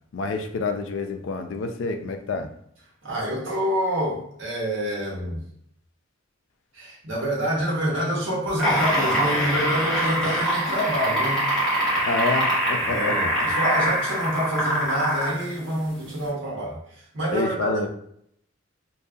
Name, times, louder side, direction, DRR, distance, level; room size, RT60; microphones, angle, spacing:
voice 1, 0.1-2.5 12.1-13.3 17.3-17.9, left 3 dB, 70° left, 6 dB, 0.4 m, -28 dB
voice 2, 3.0-5.4 6.7-11.5 12.9-16.8 17.1-17.9, equal, 75° right, -3 dB, 0.9 m, -27 dB
sound 1, 8.5-15.4 16.3-16.4, right 1 dB, 5° left, 1.1 m, -23 dB
2.7 x 2.2 x 2.4 m, 0.69 s
head